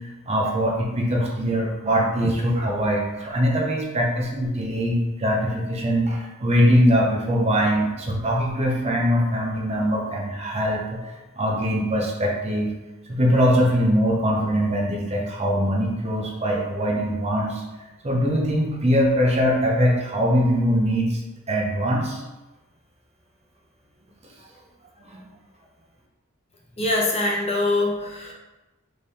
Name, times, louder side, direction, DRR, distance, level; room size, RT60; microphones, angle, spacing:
voice 1, 0.0-12.7 13.1-17.6 18.0-21.2 21.5-22.2 25.1-25.2, equal, 30° right, -1 dB, 0.8 m, -22 dB
voice 2, 26.8-28.3, left 2 dB, 30° left, -2 dB, 0.8 m, -23 dB
3.7 x 3.4 x 4.1 m, 1.1 s
head